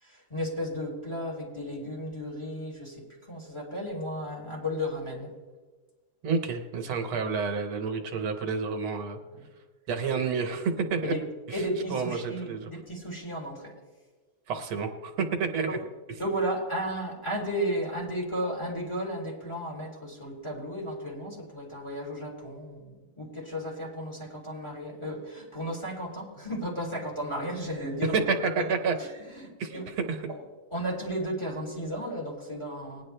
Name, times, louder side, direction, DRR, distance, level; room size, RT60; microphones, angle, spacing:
voice 1, 0.0-5.3 9.3-9.5 11.0-11.2 11.5-13.7 15.7-15.8 16.2-28.2 28.5-28.6 29.0-29.8 30.3-30.4 30.7-33.0, equal, 15° left, -3 dB, 3.3 m, -34 dB
voice 2, 6.2-9.2 9.9-11.1 11.5-11.6 11.9-12.7 14.5-15.1 15.4-15.8 28.1-28.2 28.7-29.0 29.6-29.8 30.1-30.2, right 5 dB, 80° right, 5 dB, 1.9 m, -29 dB
20.0 x 10.0 x 3.3 m, 1.3 s
omnidirectional pair, 2.3 m